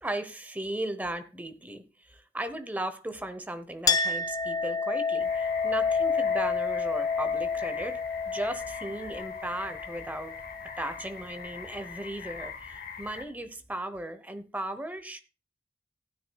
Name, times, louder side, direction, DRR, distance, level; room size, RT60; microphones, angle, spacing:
voice 1, 0.0-10.4 10.8-15.2, right 1 dB, 10° right, 0.9 m, -36 dB
Chink clink, 3.9-10.9, left 5 dB, 20° left, 0.5 m, -29 dB
sound 1, 5.2-13.2, left 5 dB, 55° left, 1.5 m, -43 dB
15.5 x 9.5 x 2.3 m
head